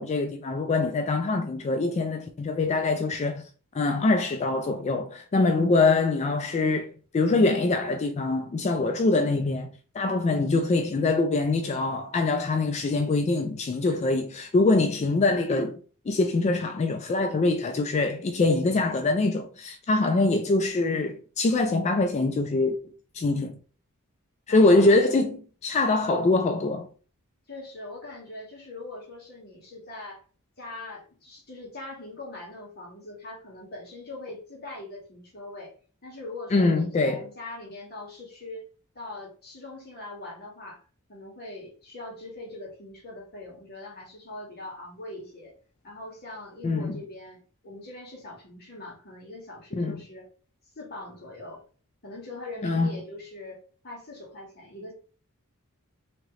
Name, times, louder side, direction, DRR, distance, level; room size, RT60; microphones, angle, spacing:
voice 1, 0.0-3.5 3.7-6.9 7.1-9.7 9.9-15.8 16.1-22.8 23.1-23.5 24.5-26.9 36.5-37.3 46.6-46.9 49.8-50.0 52.6-52.9, left 3 dB, 30° left, 0.3 m, -24 dB
voice 2, 24.5-24.9 27.5-30.2 30.6-35.7 36.0-38.6 38.9-40.8 41.1-45.5 45.8-50.3 50.7-51.6 52.0-54.9, left 2 dB, 45° left, 1.5 m, -42 dB
3.6 x 2.9 x 3.1 m
head